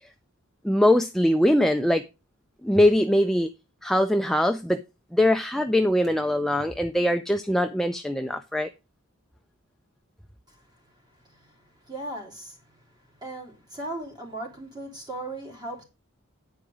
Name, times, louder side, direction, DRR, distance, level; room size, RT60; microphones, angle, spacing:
voice 1, 0.6-2.0 2.6-3.5 3.8-4.8 5.1-8.7, left 1 dB, ahead, 0.4 m, -22 dB
voice 2, 11.9-12.6 13.2-15.8, right 1 dB, 20° right, 3.3 m, -37 dB
9.3 x 4.8 x 6.2 m
head